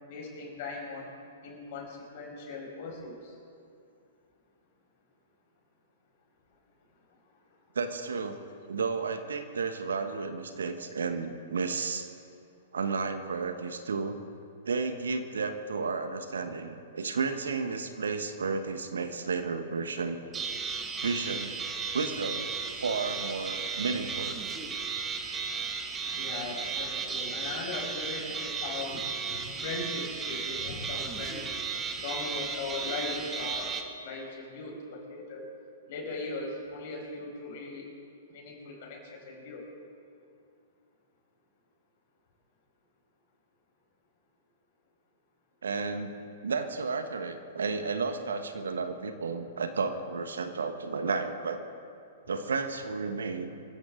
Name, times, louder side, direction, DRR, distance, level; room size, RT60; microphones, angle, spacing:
voice 1, 0.1-1.1 1.4-3.4 26.1-31.5 32.0-33.8 34.0-35.5 35.9-37.9 38.3-39.6, left 3 dB, 50° left, 0 dB, 5.0 m, -39 dB
voice 2, 7.7-8.4 8.7-12.1 12.7-14.1 14.7-20.2 21.0-21.5 21.9-22.5 22.8-24.4 45.6-46.1 46.4-51.6 52.3-53.5, right 4 dB, 70° right, 8 dB, 1.3 m, -32 dB
sound 1, 20.3-33.8, right 5 dB, 20° right, 1.4 m, -35 dB
24.0 x 15.0 x 3.9 m, 2.4 s
figure-of-eight pair, 110°, 0 cm